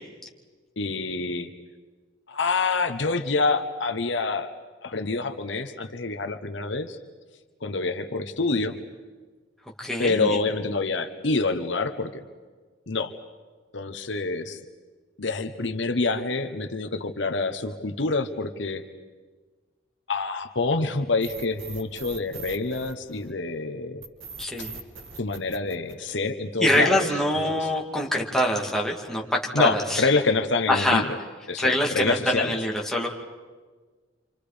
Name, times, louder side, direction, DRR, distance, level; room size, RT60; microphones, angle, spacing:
voice 1, 0.8-1.5 2.3-4.5 4.8-7.0 7.6-8.8 10.0-12.2 12.9-13.1 13.7-14.6 15.2-18.8 20.1-24.0 24.6-24.7 25.2-27.1 27.5-27.7 29.5-31.1 31.5-32.6, left 3 dB, 65° left, 8 dB, 1.2 m, -27 dB
voice 2, 9.8-10.4 24.4-24.7 26.6-30.1 30.7-31.0 31.6-33.1, left 1 dB, ahead, -2 dB, 2.6 m, -24 dB
sound 1, 21.2-23.5 24.0-26.5, right 4 dB, 80° right, 2.8 m, -41 dB
28.5 x 27.0 x 5.2 m, 1.4 s
head